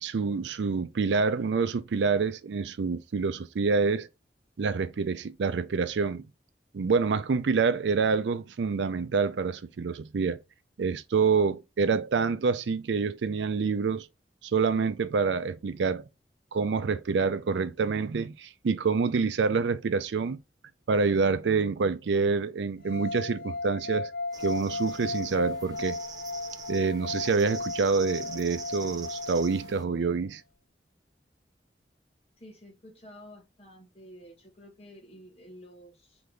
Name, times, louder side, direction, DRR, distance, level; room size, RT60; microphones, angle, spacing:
voice 1, 0.0-4.1 4.6-6.2 6.7-10.4 10.8-14.1 14.4-16.0 16.5-20.4 20.9-24.1 24.4-26.0 26.7-30.4, right 5 dB, 85° right, 0.4 m, -27 dB
sound 1, 22.8-29.9, left 3 dB, 55° left, 0.5 m, -35 dB
sound 2, 24.3-29.8, right 5 dB, 20° right, 0.5 m, -44 dB
voice 2, 32.4-36.2, equal, 35° left, 1.4 m, -50 dB
3.9 x 3.4 x 3.3 m
head